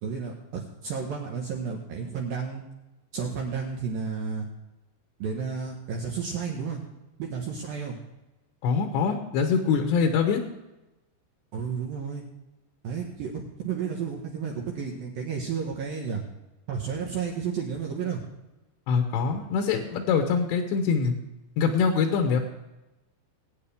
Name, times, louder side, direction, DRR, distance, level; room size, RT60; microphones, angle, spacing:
voice 1, 0.0-2.6 3.1-4.5 5.2-6.8 7.2-8.0 11.5-12.2 12.8-16.2 16.7-18.2, right 6 dB, 70° right, 0 dB, 2.2 m, -32 dB
voice 2, 8.6-10.4 18.9-21.1 21.6-22.4, left 5 dB, 75° left, 4 dB, 2.8 m, -24 dB
20.0 x 9.4 x 3.5 m, 1.0 s
omnidirectional pair, 5.9 m